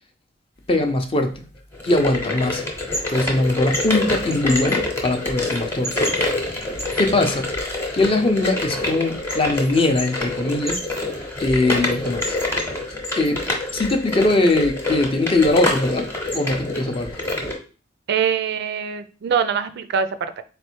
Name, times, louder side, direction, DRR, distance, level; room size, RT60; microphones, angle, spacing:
voice 1, 0.7-1.3 1.8-2.6 3.1-6.0 7.0-7.5 7.9-10.8 11.4-12.4 13.2-13.4 13.7-17.1, left 2 dB, 30° left, 6 dB, 0.5 m, -21 dB
sound 1, 1.7-17.6, left 2 dB, 10° left, 0.9 m, -26 dB
voice 2, 18.1-20.4, right 7 dB, 55° right, 11 dB, 0.4 m, -23 dB
4.1 x 3.2 x 3.0 m, 0.36 s
head